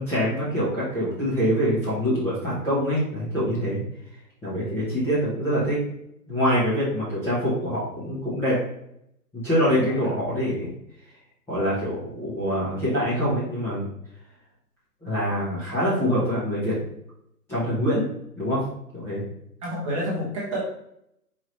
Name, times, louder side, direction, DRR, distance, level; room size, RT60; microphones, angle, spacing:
voice 1, 0.0-3.8 4.4-5.8 6.3-8.6 9.3-10.7 11.5-13.9 15.0-16.7 17.5-18.1 18.4-18.6 18.9-19.2, equal, 5° left, -12 dB, 0.9 m, -25 dB
voice 2, 9.8-10.1 19.6-20.6, equal, 20° right, -4 dB, 1.0 m, -29 dB
4.7 x 3.7 x 3.0 m, 0.76 s
figure-of-eight pair, 135°, 49 cm